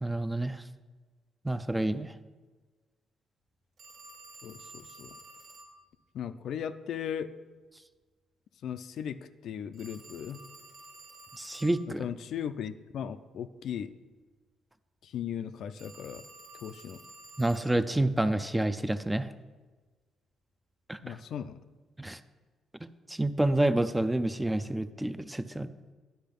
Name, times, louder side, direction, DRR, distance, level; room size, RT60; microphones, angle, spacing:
voice 1, 0.0-0.6 1.4-2.1 11.4-12.1 17.4-19.3 20.9-21.1 22.0-22.2 22.8-25.7, right 1 dB, 10° right, 12 dB, 0.4 m, -29 dB
Telephone, 3.8-5.8 9.7-11.8 15.8-17.8, right 2 dB, 65° right, 1.6 m, -51 dB
voice 2, 4.4-5.2 6.1-7.3 8.6-10.4 12.0-13.9 15.0-16.2 16.6-17.0 21.0-21.6, left 8 dB, 70° left, 11 dB, 0.4 m, -37 dB
10.5 x 5.5 x 5.3 m, 1.3 s
cardioid pair, 90°, 0 cm